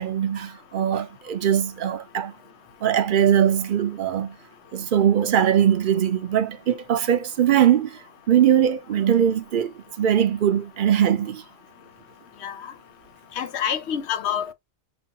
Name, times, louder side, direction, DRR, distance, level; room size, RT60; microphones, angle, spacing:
voice 1, 0.0-2.3 2.8-4.4 4.7-8.0 8.3-11.4, right 9 dB, 55° right, 0.7 m, -21 dB
voice 2, 13.4-14.5, left 8 dB, 80° left, 1.0 m, -27 dB
6.0 x 2.5 x 2.8 m
omnidirectional pair, 1.1 m